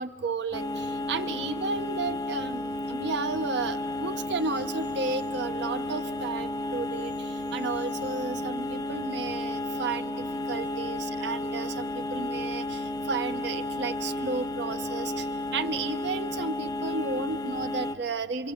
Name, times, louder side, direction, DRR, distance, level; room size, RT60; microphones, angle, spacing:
voice 1, 0.0-18.5, right 4 dB, 60° right, 9 dB, 0.8 m, -33 dB
sound 1, 0.5-17.9, left 2 dB, 20° left, 0.7 m, -32 dB
26.5 x 24.5 x 7.8 m, 2.9 s
head